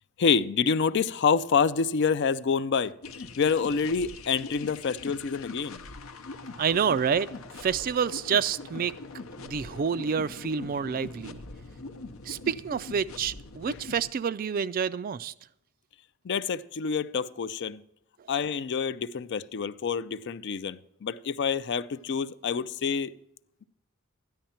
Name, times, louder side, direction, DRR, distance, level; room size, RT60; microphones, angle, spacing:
voice 1, 0.2-2.9 3.4-5.8 16.2-17.8 18.3-23.1, left 6 dB, 55° left, 0.4 m, -27 dB
sound 1, 3.0-14.1, left 3 dB, 75° left, 0.7 m, -42 dB
voice 2, 6.6-7.3 7.6-8.9 9.4-11.4 12.2-15.3, right 6 dB, 40° right, 0.3 m, -28 dB
13.0 x 10.5 x 4.3 m
head